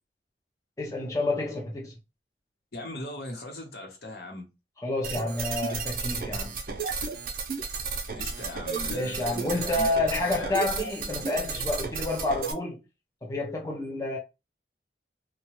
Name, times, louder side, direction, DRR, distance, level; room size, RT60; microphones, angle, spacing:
voice 1, 0.8-1.9 4.8-6.6 8.9-12.8 13.2-14.2, left 2 dB, 20° left, 0.5 m, -29 dB
voice 2, 2.7-4.5 8.1-9.9 10.2-10.7, left 1 dB, 60° left, 0.9 m, -39 dB
sound 1, 5.0-12.5, right 5 dB, 55° right, 0.5 m, -33 dB
2.8 x 2.2 x 3.0 m
head